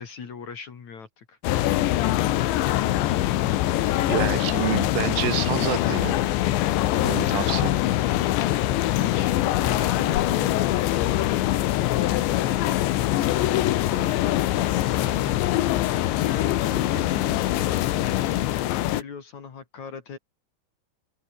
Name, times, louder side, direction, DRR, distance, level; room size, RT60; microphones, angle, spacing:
voice 1, 0.0-1.4 9.0-11.7 12.0-14.6 14.9-15.4 16.2-20.2, left 6 dB, 45° left, 3.4 m, -39 dB
sound 1, 1.4-19.0, left 14 dB, 75° left, 3.5 m, -23 dB
voice 2, 4.1-6.2 7.0-7.7, right 17 dB, 90° right, 3.6 m, -28 dB
open air
omnidirectional pair, 5.5 m